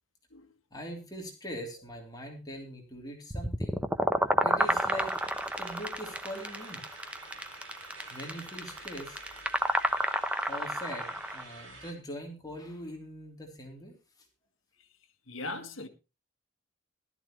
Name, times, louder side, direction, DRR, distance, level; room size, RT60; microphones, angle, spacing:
voice 1, 0.7-3.8 4.4-5.1 5.6-6.8 8.1-9.2 10.5-14.3, equal, 20° left, 3.2 m, -42 dB
sound 1, 3.3-11.4, right 1 dB, 5° right, 0.9 m, -30 dB
sound 2, 4.6-11.9, right 3 dB, 75° right, 5.2 m, -49 dB
voice 2, 15.3-15.9, left 2 dB, 70° left, 1.8 m, -38 dB
15.0 x 13.0 x 3.1 m
head